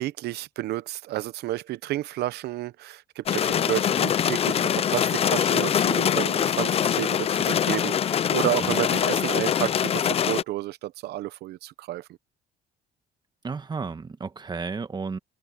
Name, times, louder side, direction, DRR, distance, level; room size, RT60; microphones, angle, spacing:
voice 1, 0.0-12.0, right 15 dB, 75° right, 0.9 m, -31 dB
sound 1, 3.3-10.4, left 9 dB, 35° left, 0.5 m, -23 dB
voice 2, 13.4-15.2, right 4 dB, 25° right, 1.5 m, -33 dB
open air
cardioid pair, 110°, 17 cm